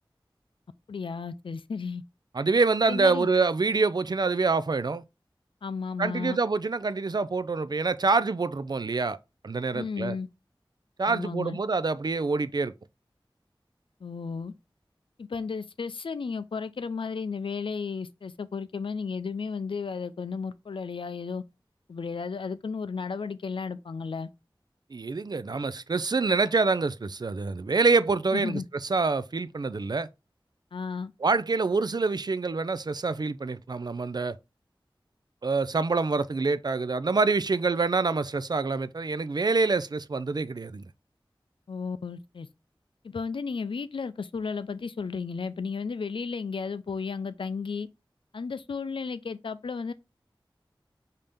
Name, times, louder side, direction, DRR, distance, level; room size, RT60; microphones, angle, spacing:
voice 1, 0.9-2.0 2.9-3.3 5.6-6.4 9.7-10.3 11.1-11.6 14.0-14.5 15.2-21.4 21.9-24.3 28.3-28.7 30.7-31.1 41.7-42.5 43.0-47.9 48.3-49.9, left 5 dB, 75° left, 0.4 m, -33 dB
voice 2, 2.3-5.0 6.0-9.2 9.4-10.2 11.0-12.7 24.9-30.1 31.2-34.4 35.4-40.9, right 4 dB, 50° right, 0.4 m, -26 dB
5.1 x 2.8 x 3.4 m
wide cardioid pair, 45°, 9 cm